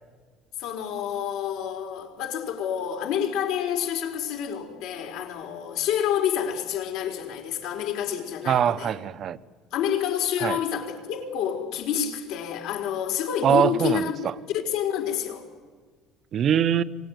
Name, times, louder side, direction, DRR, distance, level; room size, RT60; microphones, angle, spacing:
voice 1, 0.6-8.9 9.7-14.3 14.6-15.4, left 9 dB, 75° left, 4.4 m, -28 dB
voice 2, 8.5-9.4 10.4-10.6 13.4-14.3 16.3-16.8, right 9 dB, 45° right, 0.9 m, -23 dB
26.0 x 18.5 x 9.5 m
cardioid pair, 130°, 0 cm